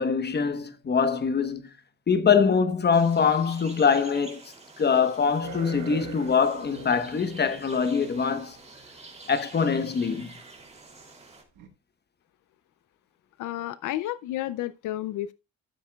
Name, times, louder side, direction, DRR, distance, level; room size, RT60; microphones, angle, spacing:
voice 1, 0.0-1.6 2.1-4.4 4.8-8.6 9.3-10.3, left 6 dB, 35° left, 1.1 m, -23 dB
sound 1, 2.9-11.4, right 3 dB, 20° right, 2.7 m, -48 dB
sound 2, 5.4-9.5 10.6-10.7 11.6-11.7, right 6 dB, 80° right, 1.6 m, -43 dB
voice 2, 13.4-15.3, left 14 dB, 85° left, 0.5 m, -31 dB
13.0 x 7.3 x 2.3 m
cardioid pair, 90°, 30 cm